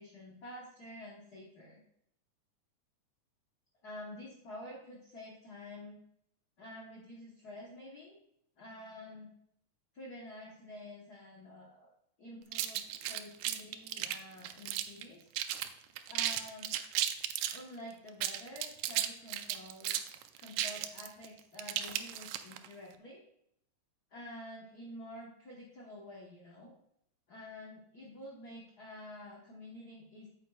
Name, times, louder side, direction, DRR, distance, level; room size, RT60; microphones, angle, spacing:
voice 1, 0.0-1.8 3.8-6.0 6.6-8.2 8.6-9.3 9.9-11.9 12.2-15.3 16.1-16.7 17.5-23.2 24.1-26.7 27.3-30.3, left 1 dB, 60° left, -3 dB, 1.0 m, -49 dB
sound 1, 12.5-15.0 15.3-15.7 16.0-17.6 18.1-22.7, right 12 dB, 85° right, 2.0 m, -35 dB
8.7 x 8.1 x 2.4 m, 0.74 s
omnidirectional pair, 3.5 m